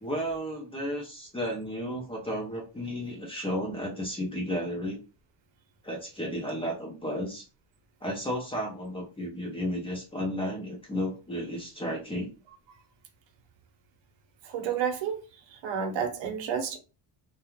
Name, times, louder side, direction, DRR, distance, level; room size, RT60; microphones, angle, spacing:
voice 1, 0.0-5.0 5.8-7.5 8.0-12.3, equal, 15° left, 0.4 m, -33 dB
voice 2, 14.5-15.2 15.6-16.8, right 7 dB, 85° right, 0.8 m, -30 dB
2.3 x 2.1 x 3.0 m
cardioid pair, 175°, 44 cm